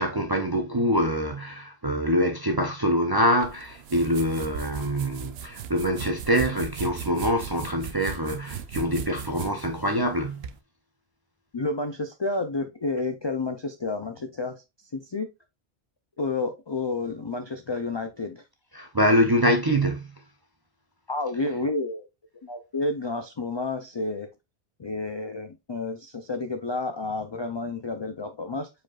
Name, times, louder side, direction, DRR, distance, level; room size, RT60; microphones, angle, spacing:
voice 1, 0.0-10.5 18.7-20.1, equal, 35° right, 0.4 m, -25 dB
sound 1, 3.4-10.6, right 7 dB, 70° right, 0.8 m, -38 dB
voice 2, 11.5-14.6 14.9-15.3 16.2-18.4 21.1-22.1 22.4-24.3 24.8-28.7, left 3 dB, 45° left, 0.3 m, -30 dB
5.0 x 4.3 x 2.3 m
omnidirectional pair, 1.1 m